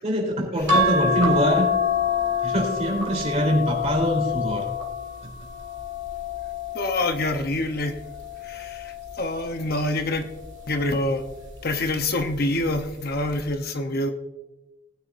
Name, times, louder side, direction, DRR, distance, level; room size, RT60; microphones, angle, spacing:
voice 1, 0.0-1.7 2.4-4.6 5.2-5.3, equal, 30° right, 0 dB, 3.4 m, -24 dB
sound 1, 0.7-7.3 7.9-9.3 10.6-11.0 11.3-11.4, left 4 dB, 60° right, 1.9 m, -26 dB
voice 2, 6.7-8.0 8.4-10.2 10.7-11.2 11.6-14.1, left 2 dB, 45° left, 6 dB, 0.8 m, -26 dB
19.5 x 9.6 x 2.6 m, 1.1 s
head